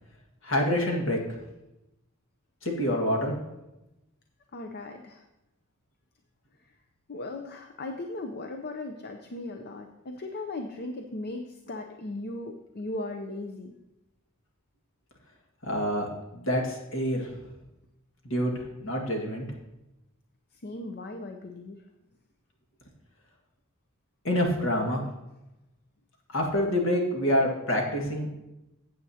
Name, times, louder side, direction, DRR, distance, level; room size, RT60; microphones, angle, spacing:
voice 1, 0.4-1.4 2.6-3.4 15.6-17.3 18.2-18.5 18.8-19.4 24.2-25.0 26.3-28.3, equal, 65° left, 0 dB, 1.8 m, -27 dB
voice 2, 4.5-5.2 7.1-13.7 20.6-21.8, left 2 dB, 50° left, 5 dB, 0.6 m, -37 dB
15.0 x 7.8 x 2.8 m, 0.96 s
head